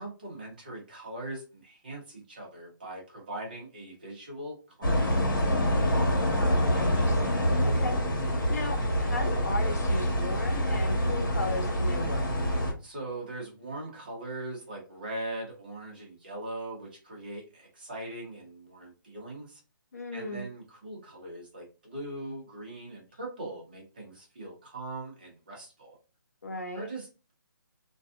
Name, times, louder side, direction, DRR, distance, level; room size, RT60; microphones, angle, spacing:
voice 1, 0.0-5.5 12.8-19.6 20.1-26.0 26.7-27.3, right 1 dB, 25° right, -1 dB, 0.7 m, -41 dB
sound 1, 4.8-12.7, equal, 65° left, 1.3 m, -26 dB
voice 2, 6.0-12.3 19.9-20.5 26.4-26.9, left 2 dB, 45° left, 4 dB, 0.6 m, -37 dB
2.6 x 2.3 x 2.4 m, 0.33 s
hypercardioid pair, 180°, 11 cm